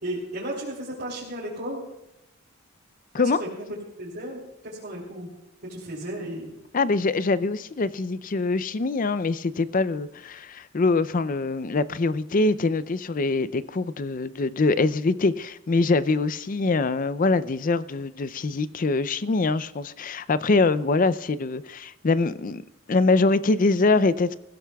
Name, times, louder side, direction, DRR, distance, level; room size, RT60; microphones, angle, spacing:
voice 1, 0.0-1.8 3.2-3.5 4.0-5.3 5.7-6.6, right 1 dB, 50° right, 3.0 m, -34 dB
voice 2, 6.7-22.6 22.9-24.3, left 3 dB, 40° left, 0.4 m, -24 dB
25.0 x 16.0 x 2.3 m
head